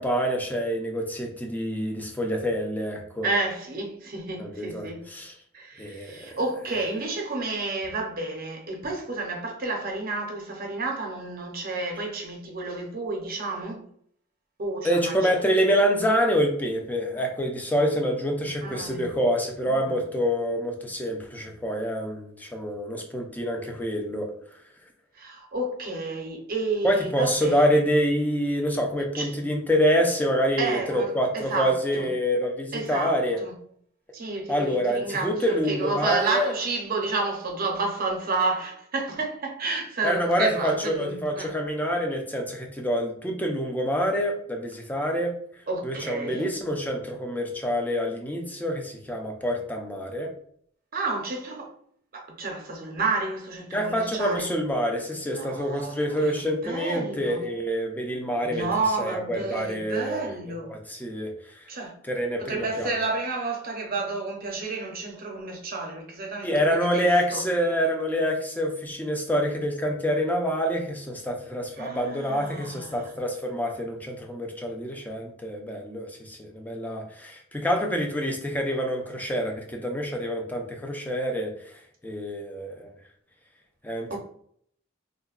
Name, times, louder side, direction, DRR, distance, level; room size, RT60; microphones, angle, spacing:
voice 1, 0.0-3.3 4.4-5.3 5.8-6.4 14.8-24.3 26.8-33.4 34.5-36.5 40.0-45.3 45.8-50.3 53.7-58.7 59.0-60.2 60.7-61.6 62.1-63.0 66.4-81.5 82.0-82.9 83.8-84.2, equal, 10° left, 0.5 m, -26 dB
voice 2, 3.2-5.1 5.5-13.9 14.6-15.4 18.6-19.1 19.6-20.0 25.2-27.8 29.1-29.3 30.6-32.1 32.7-33.5 34.1-41.5 45.7-46.5 50.9-51.7 52.1-54.5 55.3-56.3 56.6-57.4 58.4-60.7 61.7-61.9 62.4-67.5 71.8-73.1 84.1-84.2, right 3 dB, 50° right, 0.7 m, -31 dB
3.7 x 2.1 x 2.4 m
head